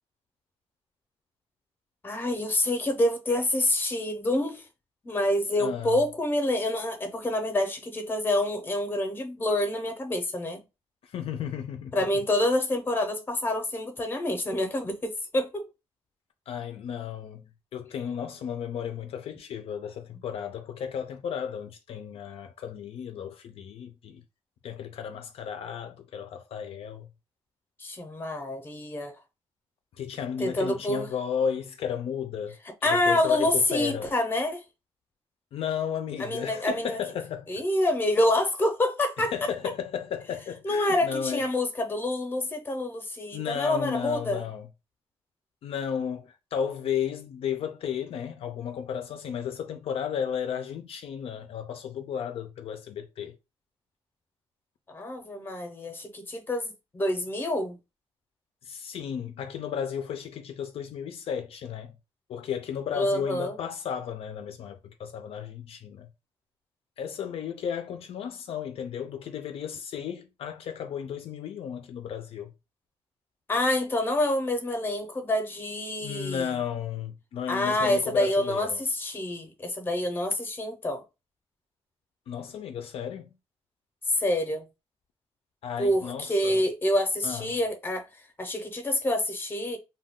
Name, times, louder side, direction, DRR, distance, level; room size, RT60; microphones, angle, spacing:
voice 1, 2.0-4.6 5.0-10.6 11.9-15.6 27.8-29.1 30.4-31.1 32.8-34.6 36.2-37.0 37.5-39.3 40.6-44.4 54.9-57.8 62.9-63.6 73.5-76.5 77.5-81.0 84.1-84.7 85.8-88.1 88.4-89.8, left 1 dB, 20° left, 0.6 m, -27 dB
voice 2, 5.6-6.0 11.0-11.9 16.5-24.2 24.6-27.1 29.9-32.6 32.8-34.1 35.5-37.5 39.2-41.4 43.3-44.7 45.6-53.3 58.6-62.0 62.3-66.1 67.0-72.5 76.0-78.8 82.3-83.3 85.6-86.6 87.2-87.6, left 8 dB, 65° left, 0.4 m, -34 dB
2.3 x 2.2 x 3.5 m
cardioid pair, 135°, 11 cm